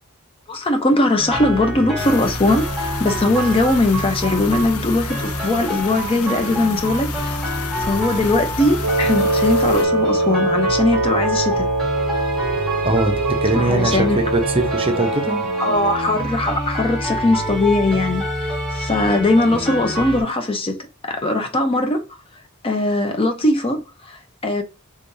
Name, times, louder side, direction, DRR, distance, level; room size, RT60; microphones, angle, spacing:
voice 1, 0.5-7.4 7.8-11.7 13.6-14.2 15.6-22.0 22.6-24.6, left 2 dB, 25° left, 0.5 m, -20 dB
sound 1, 1.2-20.2, right 1 dB, ahead, 1.6 m, -27 dB
sound 2, 2.0-9.9, left 6 dB, 85° left, 0.5 m, -32 dB
Wind instrument woodwind instrument, 8.8-16.1, right 2 dB, 70° right, 0.5 m, -22 dB
voice 2, 12.8-13.2 13.4-15.4, right 2 dB, 25° right, 0.6 m, -21 dB
3.6 x 3.3 x 2.6 m
head